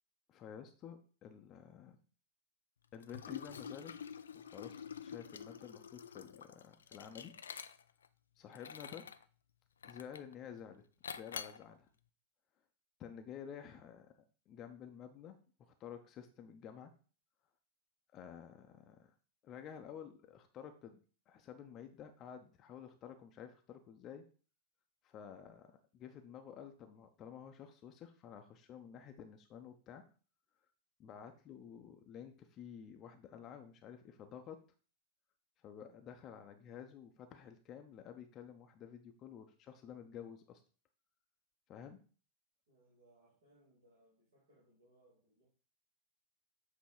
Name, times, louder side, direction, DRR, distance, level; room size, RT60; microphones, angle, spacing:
voice 1, 0.3-2.0 2.9-3.9 4.3-7.3 8.4-9.1 9.8-10.8 11.1-11.9 13.0-14.2 14.5-16.9 18.1-19.1 19.4-21.0 21.3-24.2 25.0-30.0 31.0-34.6 35.6-40.6 41.7-42.0, left 8 dB, 35° left, 6 dB, 0.7 m, -51 dB
Liquid, 3.0-8.1 8.5-9.2 9.8-10.3 11.0-11.6, left 7 dB, 70° left, 0.3 m, -48 dB
voice 2, 42.7-45.5, right 1 dB, 65° right, -6 dB, 2.4 m, -69 dB
7.6 x 3.0 x 4.7 m, 0.39 s
figure-of-eight pair, 90°, 0 cm